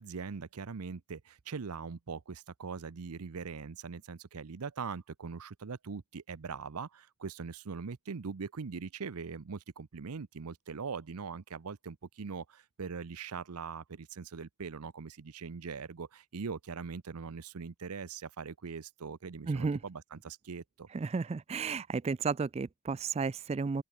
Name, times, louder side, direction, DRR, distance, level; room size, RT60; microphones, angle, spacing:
voice 1, 0.0-20.9, right 5 dB, 90° right, 0.7 m, -41 dB
voice 2, 19.5-19.8 20.9-23.8, right 4 dB, 30° right, 0.3 m, -33 dB
open air
head